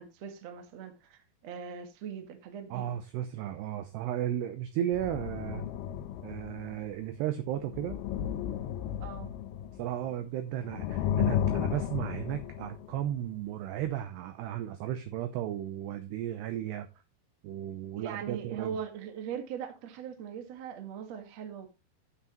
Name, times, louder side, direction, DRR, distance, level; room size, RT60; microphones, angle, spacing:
voice 1, 0.0-2.9 9.0-9.3 18.0-21.7, right 8 dB, 55° right, 1.9 m, -40 dB
voice 2, 2.7-5.6 6.2-8.0 9.8-16.9 17.4-18.7, right 11 dB, 80° right, 2.4 m, -34 dB
sound 1, 4.9-7.1 7.6-10.2 10.6-13.1 13.9-14.0, left 10 dB, 90° left, 2.2 m, -33 dB
12.5 x 8.0 x 3.0 m
omnidirectional pair, 5.8 m